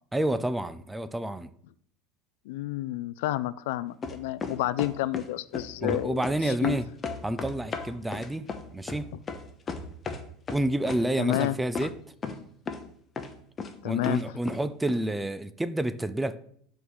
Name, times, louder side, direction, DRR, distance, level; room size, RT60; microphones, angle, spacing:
voice 1, 0.1-1.5 5.8-6.9 7.2-9.1 10.5-11.9 13.8-16.4, right 1 dB, 5° right, 13 dB, 0.4 m, -29 dB
voice 2, 2.5-6.8 11.2-11.6 13.8-14.2, left 15 dB, 75° left, 17 dB, 0.3 m, -30 dB
sound 1, 4.0-5.3 5.5-6.4 6.6-10.2 10.5-11.0 11.3-11.5 11.7-11.9 12.2-12.4 12.7-12.8 13.2-13.7 14.0-14.6 14.9-15.0, left 4 dB, 25° left, 0.8 m, -34 dB
6.2 x 3.7 x 6.1 m, 0.63 s
supercardioid pair, 130°, 0 cm